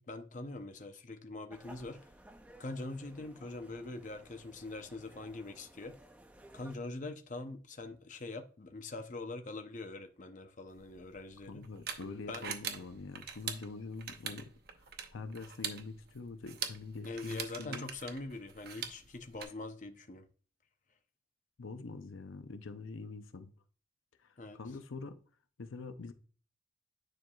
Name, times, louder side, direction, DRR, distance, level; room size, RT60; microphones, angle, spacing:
voice 1, 0.0-2.0 2.6-6.0 6.5-11.7 12.3-12.6 17.0-20.3 24.4-24.6, left 2 dB, 40° left, 0.6 m, -43 dB
sound 1, 1.5-6.8, right 1 dB, 5° right, 0.5 m, -57 dB
sound 2, 10.7-19.4, right 7 dB, 50° right, 0.8 m, -44 dB
voice 2, 11.5-14.5 15.1-17.9 21.6-23.5 24.2-25.2 25.6-26.1, left 3 dB, 85° left, 0.6 m, -45 dB
9.8 x 4.6 x 2.3 m
head